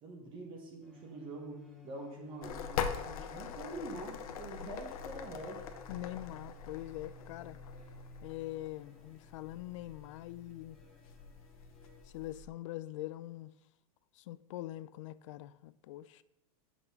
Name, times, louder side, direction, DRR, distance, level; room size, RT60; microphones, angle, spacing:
voice 1, 0.0-5.7, right 2 dB, 25° right, 1.2 m, -45 dB
sound 1, 0.8-12.0, left 5 dB, ahead, 1.9 m, -58 dB
sound 2, 2.4-12.5, left 7 dB, 70° left, 0.9 m, -43 dB
voice 2, 5.9-7.6 8.2-10.8 12.1-13.5 14.2-16.2, left 15 dB, 55° left, 0.4 m, -43 dB
6.6 x 6.0 x 5.7 m
supercardioid pair, 165°, 19 cm